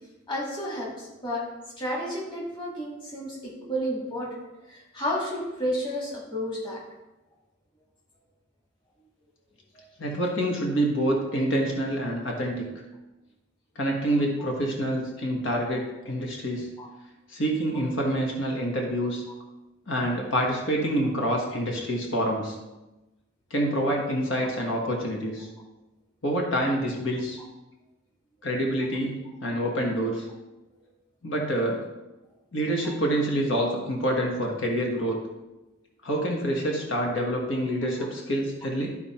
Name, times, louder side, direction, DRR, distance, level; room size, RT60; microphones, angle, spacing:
voice 1, 0.3-6.8 9.7-9.8 16.8-16.9 24.4-24.5 27.4-27.5 32.8-32.9, equal, 25° left, -4 dB, 2.0 m, -32 dB
voice 2, 10.0-12.6 13.7-16.7 17.3-19.2 19.9-22.6 23.5-25.5 26.2-27.4 28.4-30.3 31.2-31.8 32.5-35.2 36.0-39.0, right 1 dB, 75° left, 0 dB, 1.5 m, -27 dB
12.5 x 4.3 x 4.3 m, 1.0 s
head